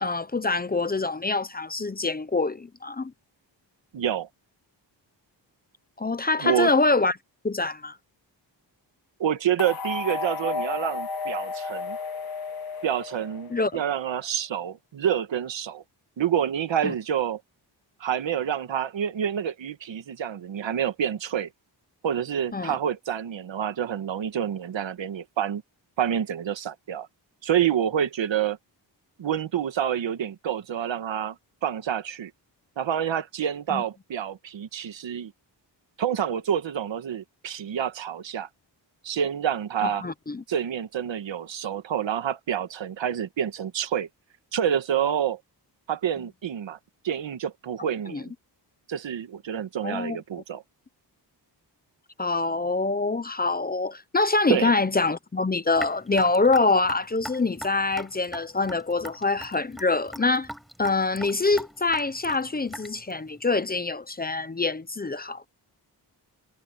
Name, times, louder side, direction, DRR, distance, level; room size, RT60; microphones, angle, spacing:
voice 1, 0.0-3.1 6.0-7.1 7.4-8.0 13.5-13.8 16.8-16.9 22.5-22.7 33.7-33.8 39.8-40.4 48.1-48.2 49.8-50.2 52.2-60.5 60.8-65.5, left 3 dB, 20° left, 0.7 m, -25 dB
voice 2, 3.9-4.3 6.4-6.7 9.2-12.0 12.8-15.8 16.2-17.4 18.0-21.5 22.0-25.6 26.0-27.1 27.4-28.6 29.2-31.4 31.6-32.3 32.8-35.3 36.0-38.5 39.0-40.0 40.5-44.1 44.5-45.4 45.9-46.8 47.0-48.3 48.9-50.6 54.5-54.7, right 9 dB, 80° right, 1.6 m, -28 dB
sound 1, 9.6-13.8, left 4 dB, 55° left, 1.9 m, -32 dB
Raindrop / Drip, 55.8-63.1, equal, ahead, 5.4 m, -40 dB
wide cardioid pair, 170°, 44 cm